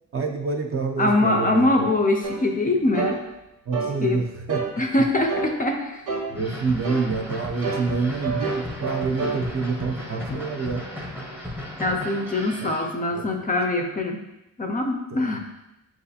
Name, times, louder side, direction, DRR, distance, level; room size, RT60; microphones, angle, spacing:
voice 1, 0.1-1.9 3.7-4.6 6.3-10.9 12.6-12.7 13.1-13.3 15.1-15.4, right 4 dB, 45° right, 3 dB, 0.5 m, -27 dB
voice 2, 1.0-3.2 4.0-4.2 4.8-6.0 10.3-10.4 11.8-14.3 14.6-15.4, left 2 dB, 25° left, 3 dB, 0.4 m, -23 dB
sound 1, 2.2-2.4 2.9-3.2 3.7-4.0 4.5-4.7 5.3-5.5 6.1-6.3 6.8-7.1 7.6-9.4, right 5 dB, 75° right, 1.0 m, -28 dB
sound 2, 6.3-12.9, left 1 dB, 5° right, 0.7 m, -35 dB
7.3 x 2.4 x 2.7 m, 0.92 s
wide cardioid pair, 140°, 32 cm